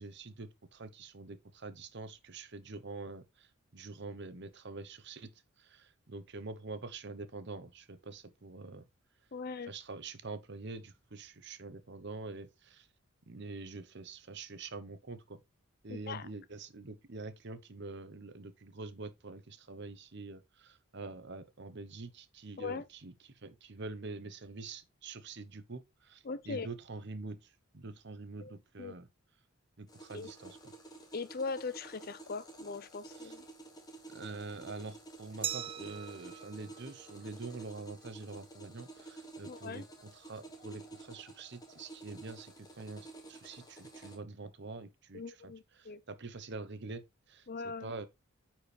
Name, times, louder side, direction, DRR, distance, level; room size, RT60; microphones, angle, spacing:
voice 1, 0.0-8.9 9.7-12.9 13.3-15.4 15.8-29.1 29.8-30.6 33.1-33.3 34.1-48.1, right 3 dB, 50° right, 0.9 m, -46 dB
voice 2, 9.3-9.7 15.9-16.2 22.6-22.8 26.2-26.7 28.4-28.5 28.8-28.9 30.1-30.3 31.1-33.4 39.5-39.8 45.1-46.0 47.5-47.9, left 4 dB, 45° left, 0.5 m, -40 dB
sound 1, 29.9-44.2, right 2 dB, 15° left, 1.3 m, -51 dB
Glass, 35.4-38.2, right 9 dB, 25° right, 0.3 m, -42 dB
9.7 x 4.5 x 3.3 m
head